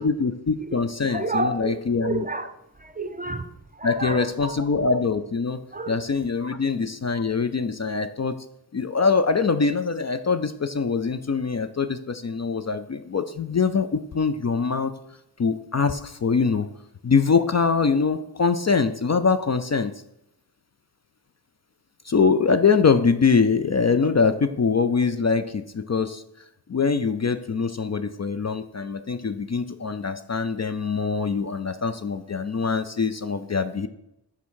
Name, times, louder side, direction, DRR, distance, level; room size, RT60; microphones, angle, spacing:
voice 1, 0.0-2.2 3.8-5.6 5.9-8.4 8.7-14.9 15.4-16.7 17.0-19.9 22.1-26.2 26.7-33.9, left 5 dB, 40° left, 10 dB, 0.4 m, -23 dB
voice 2, 0.7-2.5 2.8-4.7 5.7-6.0 6.4-6.5, right 2 dB, 20° right, 10 dB, 0.6 m, -31 dB
5.9 x 4.6 x 6.3 m, 0.82 s
wide cardioid pair, 65°, 42 cm